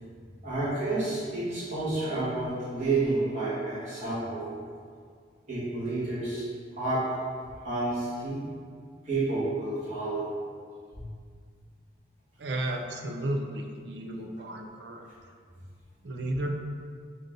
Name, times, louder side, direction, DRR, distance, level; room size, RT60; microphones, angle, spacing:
voice 1, 0.4-4.5 5.5-6.4 6.7-7.1 7.6-8.4 9.0-10.3 10.9-11.0, right 2 dB, 40° right, -12 dB, 1.5 m, -30 dB
voice 2, 12.4-15.1 16.0-16.5, right 1 dB, 65° right, 2 dB, 0.5 m, -33 dB
5.2 x 2.6 x 3.7 m, 2.1 s
head